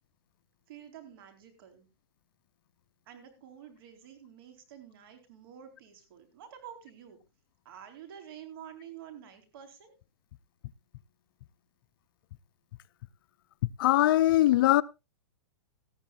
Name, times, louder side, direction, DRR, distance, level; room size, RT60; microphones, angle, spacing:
voice 1, 0.7-1.9 3.1-7.2 7.6-9.9, right 9 dB, 55° right, 4.1 m, -49 dB
voice 2, 13.8-14.8, left 15 dB, 55° left, 0.6 m, -21 dB
18.5 x 13.5 x 2.4 m
hypercardioid pair, 140°, 14 cm